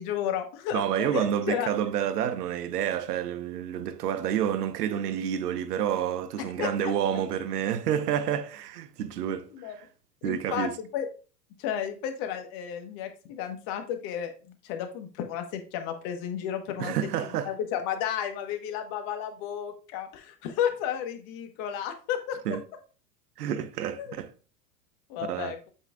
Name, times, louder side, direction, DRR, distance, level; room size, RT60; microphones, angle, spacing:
voice 1, 0.0-1.7 6.6-6.9 9.5-9.7 10.2-11.1 11.6-16.9 17.4-22.4 24.0-24.1 25.1-25.6, left 9 dB, 55° left, 1.5 m, -32 dB
voice 2, 0.7-9.9 10.2-10.8 16.8-17.5 22.5-22.6 23.4-24.3 25.2-25.5, right 9 dB, 75° right, 0.9 m, -29 dB
8.1 x 5.6 x 2.5 m
hypercardioid pair, 90°, 47 cm